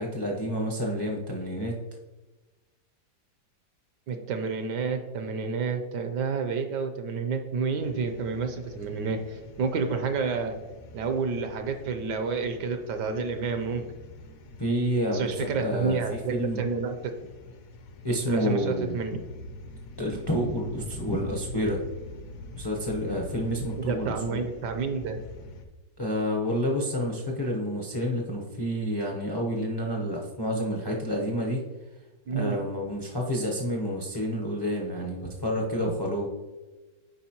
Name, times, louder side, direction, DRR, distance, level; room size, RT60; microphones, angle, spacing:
voice 1, 0.0-1.8 14.6-15.3 15.6-16.6 18.0-19.0 20.0-21.8 22.5-24.4 26.0-31.6 32.3-36.3, equal, 40° left, -1 dB, 0.3 m, -29 dB
voice 2, 4.1-10.6 10.9-13.9 15.1-17.1 18.2-19.2 23.8-25.2 32.3-32.6, right 5 dB, 75° right, 7 dB, 1.2 m, -29 dB
sound 1, 7.8-25.7, left 1 dB, 60° left, 1.0 m, -45 dB
8.1 x 5.1 x 2.9 m, 1.2 s
omnidirectional pair, 1.9 m